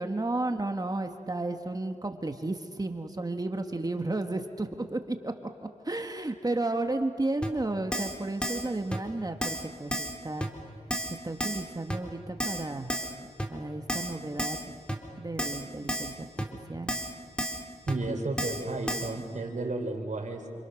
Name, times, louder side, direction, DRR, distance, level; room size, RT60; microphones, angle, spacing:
voice 1, 0.0-5.3 5.8-10.5 11.2-12.9 13.5-14.7 15.2-17.0, right 2 dB, 30° right, 5 dB, 1.7 m, -33 dB
Keyboard (musical), 7.4-7.5 7.9-8.1 8.4-8.6 8.9-9.0 9.4-9.6 9.9-10.1 10.4-10.5 10.9-11.1 11.4-11.6 11.9-12.0 12.4-12.6 12.9-13.1 13.4-13.5 13.9-14.1 14.4-14.6 14.9-15.0 15.4-15.6 15.9-16.1 16.4-16.5 16.9-17.1 17.4-17.6 17.9-18.0 18.4-18.6 18.9-19.1, equal, 10° left, 3.2 m, -31 dB
voice 2, 17.9-20.5, right 2 dB, 80° right, 1 dB, 4.2 m, -32 dB
28.5 x 27.5 x 6.6 m, 2.2 s
wide cardioid pair, 70°, 13 cm